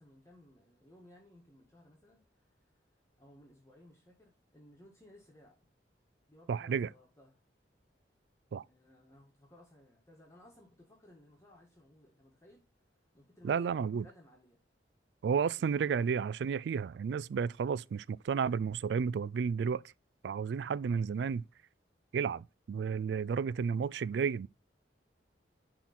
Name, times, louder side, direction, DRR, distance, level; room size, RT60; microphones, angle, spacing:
voice 1, 0.0-2.9 3.2-5.6 6.3-7.4 8.6-12.6 13.1-14.6 15.6-16.1, left 1 dB, 15° left, 1.6 m, -60 dB
voice 2, 6.5-6.9 8.5-8.6 13.4-14.1 15.2-19.8 20.2-21.4 22.1-24.5, right 6 dB, 70° right, 0.3 m, -32 dB
10.5 x 3.7 x 4.2 m
head